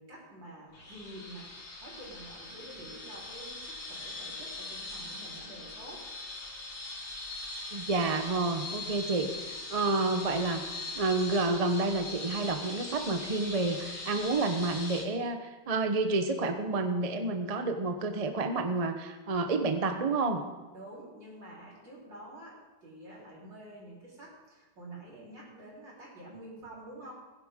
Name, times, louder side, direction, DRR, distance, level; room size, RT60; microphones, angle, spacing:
voice 1, 0.0-1.5 1.8-6.0 20.7-27.1, right 1 dB, 70° right, -5 dB, 4.8 m, -48 dB
sound 1, 0.7-15.0, left 2 dB, 60° left, 2.6 m, -41 dB
voice 2, 7.7-10.6 10.9-20.4, right 3 dB, 35° right, 6 dB, 0.6 m, -29 dB
20.0 x 11.0 x 3.7 m, 1.2 s
omnidirectional pair, 2.0 m